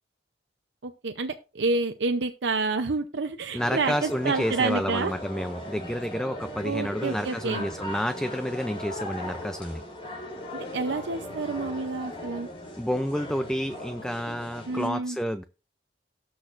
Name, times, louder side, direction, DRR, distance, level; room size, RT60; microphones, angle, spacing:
voice 1, 0.8-5.1 6.6-7.7 10.5-12.5 14.7-15.2, right 3 dB, 90° right, 6 dB, 0.7 m, -29 dB
voice 2, 3.5-9.8 12.8-15.4, equal, 5° left, 10 dB, 0.4 m, -30 dB
sound 1, 3.6-14.9, left 1 dB, 35° left, 4.1 m, -38 dB
18.0 x 6.3 x 2.5 m, 0.33 s
head